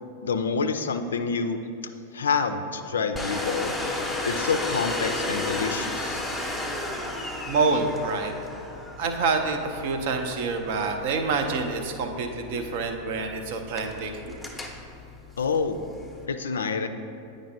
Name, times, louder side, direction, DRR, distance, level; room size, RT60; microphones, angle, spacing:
voice 1, 0.2-1.6 2.1-3.7 4.3-6.2 15.4-15.8 16.3-16.9, left 5 dB, 65° left, 8 dB, 0.4 m, -27 dB
Domestic sounds home sounds, 3.1-16.3, left 2 dB, 5° left, 0.7 m, -34 dB
voice 2, 7.5-8.3 9.0-14.3, right 4 dB, 50° right, 5 dB, 0.6 m, -27 dB
9.3 x 5.0 x 2.7 m, 2.6 s
figure-of-eight pair, 90°, 0 cm